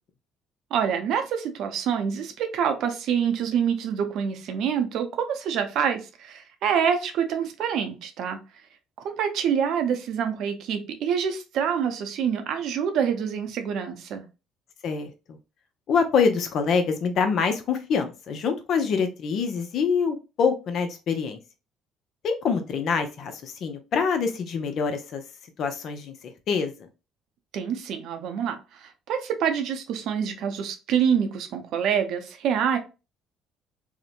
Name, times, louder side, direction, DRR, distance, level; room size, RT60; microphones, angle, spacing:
voice 1, 0.7-8.4 9.0-14.3 27.5-32.8, right 7 dB, 70° right, 0.5 m, -26 dB
voice 2, 14.8-15.4 15.9-21.4 22.2-25.2 25.6-26.1 26.5-26.7, left 5 dB, 60° left, 0.5 m, -25 dB
2.8 x 2.1 x 2.4 m
supercardioid pair, 70°, 0 cm